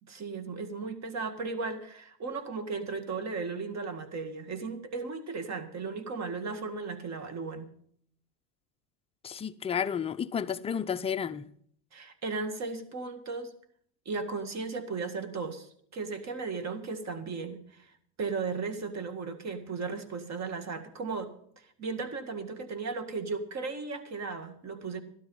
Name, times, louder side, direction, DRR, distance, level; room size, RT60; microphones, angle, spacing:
voice 1, 0.0-7.7 11.9-13.5 14.1-25.0, right 4 dB, 35° right, 2.0 m, -36 dB
voice 2, 9.2-11.4, left 7 dB, 15° left, 0.4 m, -31 dB
13.0 x 12.0 x 5.5 m
supercardioid pair, 110°, 48 cm